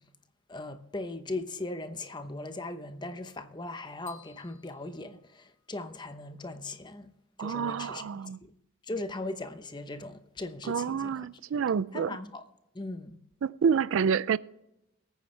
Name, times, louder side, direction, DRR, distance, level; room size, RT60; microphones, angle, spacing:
voice 1, 0.5-7.1 7.4-8.1 8.4-8.5 8.9-11.3 11.9-12.4 12.7-13.2, left 2 dB, 20° left, 0.8 m, -39 dB
sound 1, 4.1-6.0, left 8 dB, 85° left, 3.0 m, -59 dB
voice 2, 7.4-8.4 10.7-12.2 13.4-14.4, right 6 dB, 75° right, 0.4 m, -28 dB
22.0 x 9.4 x 3.3 m
head